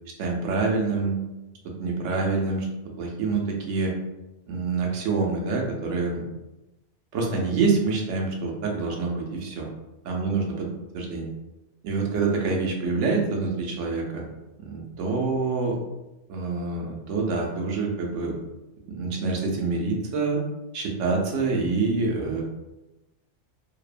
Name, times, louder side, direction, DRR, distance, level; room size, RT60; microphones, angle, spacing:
voice 1, 0.2-1.2 1.8-2.7 3.0-3.9 4.5-6.2 7.1-9.7 10.1-10.7 10.9-11.3 11.8-14.2 14.6-15.8 16.3-18.3 18.9-20.4 20.7-22.4, right 4 dB, 90° right, 0 dB, 1.0 m, -26 dB
2.7 x 2.1 x 2.4 m, 0.98 s
omnidirectional pair, 1.2 m